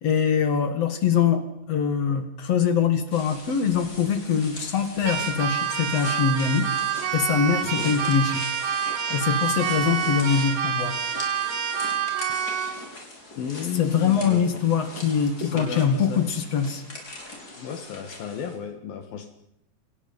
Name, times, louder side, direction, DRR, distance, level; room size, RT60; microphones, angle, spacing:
voice 1, 0.0-6.7 7.1-8.4 9.1-11.0 12.3-12.4 13.8-16.8, left 7 dB, 50° left, 9 dB, 2.7 m, -23 dB
sound 1, 3.1-18.5, left 2 dB, 25° left, 5.6 m, -41 dB
Keyboard (musical), 5.0-12.8, right 7 dB, 70° right, 3.7 m, -27 dB
voice 2, 13.4-14.6 15.4-16.2 17.6-19.3, left 7 dB, 70° left, 8 dB, 3.4 m, -34 dB
27.0 x 19.0 x 5.5 m, 0.77 s
omnidirectional pair, 4.4 m